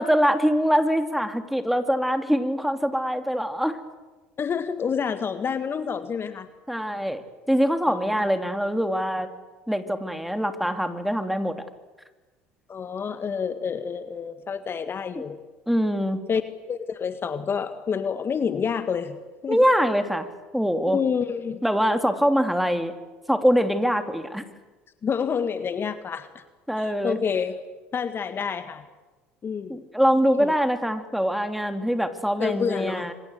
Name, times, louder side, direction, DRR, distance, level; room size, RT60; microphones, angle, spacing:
voice 1, 0.0-3.8 6.7-9.3 9.7-11.6 15.1-15.2 15.7-16.2 19.5-20.3 20.5-21.0 21.6-22.9 23.3-24.4 26.7-27.2 29.7-33.1, equal, ahead, 8 dB, 3.0 m, -23 dB
voice 2, 4.4-6.5 7.9-8.2 12.7-15.4 16.3-16.4 16.7-19.6 20.9-21.6 25.0-26.4 26.8-27.6 27.9-28.8 29.4-29.8 30.4-30.5 32.4-33.1, left 6 dB, 35° left, 10 dB, 1.6 m, -28 dB
26.5 x 25.0 x 8.1 m, 1.2 s
hypercardioid pair, 65°, 7 cm